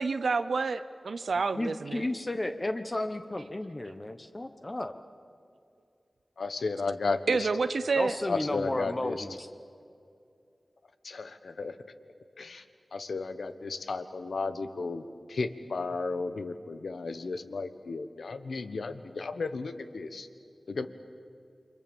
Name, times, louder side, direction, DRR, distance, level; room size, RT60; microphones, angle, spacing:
voice 1, 0.0-2.0 7.3-8.2, right 4 dB, 85° right, 11 dB, 0.7 m, -28 dB
voice 2, 1.5-4.9 8.0-9.5, left 1 dB, 35° left, 8 dB, 1.2 m, -33 dB
voice 3, 6.4-7.5 8.3-9.2 11.0-11.8 12.4-12.6 12.9-15.0 15.3-20.3 20.7-20.9, left 3 dB, 85° left, 10 dB, 1.2 m, -34 dB
29.5 x 24.0 x 7.2 m, 2.4 s
wide cardioid pair, 55°, 0 cm